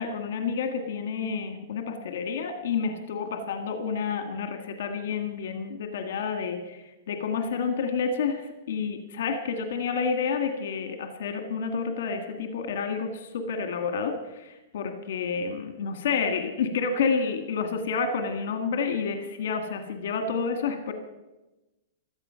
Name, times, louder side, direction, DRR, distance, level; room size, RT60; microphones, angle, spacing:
voice 1, 0.0-20.9, left 5 dB, 65° left, 6 dB, 1.8 m, -29 dB
16.5 x 13.0 x 5.7 m, 1.0 s
hypercardioid pair, 160°, 0 cm